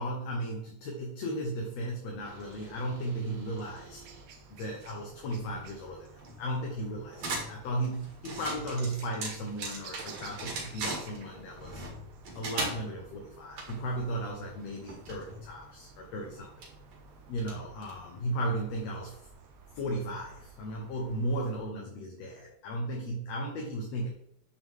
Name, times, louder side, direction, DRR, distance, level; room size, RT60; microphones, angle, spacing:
voice 1, 0.0-4.0 4.5-11.9 12.4-16.7 17.3-19.3 19.7-24.1, right 1 dB, 65° left, 0 dB, 2.2 m, -35 dB
sound 1, 2.0-21.6, right 5 dB, 80° right, 2.4 m, -54 dB
sound 2, 2.2-18.2, right 2 dB, 65° right, 3.3 m, -42 dB
9.1 x 6.7 x 3.7 m, 0.71 s
omnidirectional pair, 3.4 m